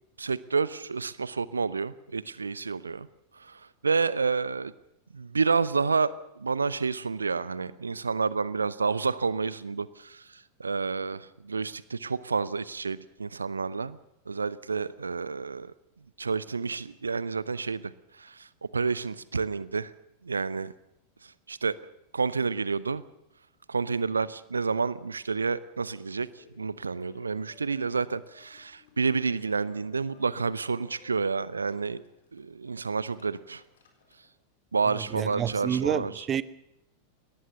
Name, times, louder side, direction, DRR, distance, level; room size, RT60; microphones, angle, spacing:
voice 1, 0.2-3.1 3.4-4.7 5.1-14.0 14.3-15.7 16.2-18.5 18.7-19.9 20.2-20.7 21.2-21.7 22.1-23.0 23.7-32.0 32.3-33.6 34.7-36.2, right 4 dB, 75° right, 19 dB, 0.7 m, -29 dB
Laughter, 26.2-34.3, left 4 dB, 60° left, 4.2 m, -59 dB
voice 2, 35.1-36.4, right 8 dB, 25° right, 17 dB, 0.9 m, -28 dB
22.0 x 18.5 x 6.9 m, 0.86 s
figure-of-eight pair, 90°, 0 cm